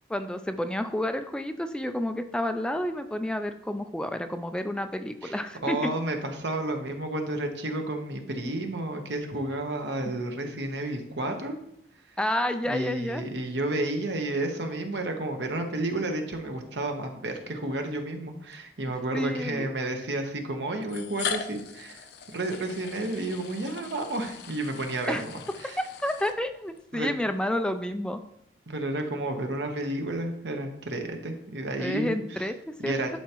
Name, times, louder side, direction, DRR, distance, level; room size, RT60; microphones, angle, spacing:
voice 1, 0.1-5.9 12.2-13.2 19.1-19.7 25.1-25.2 25.8-28.2 31.8-33.2, left 1 dB, 5° left, 8 dB, 0.3 m, -30 dB
voice 2, 5.2-11.6 12.6-25.8 26.9-27.1 28.7-32.5 32.8-33.2, right 2 dB, 85° right, 4 dB, 1.1 m, -31 dB
sound 1, 17.5-17.6 18.5-18.6 19.8-19.9 20.8-26.8, left 6 dB, 70° left, 0.6 m, -39 dB
11.0 x 4.6 x 3.0 m, 0.74 s
head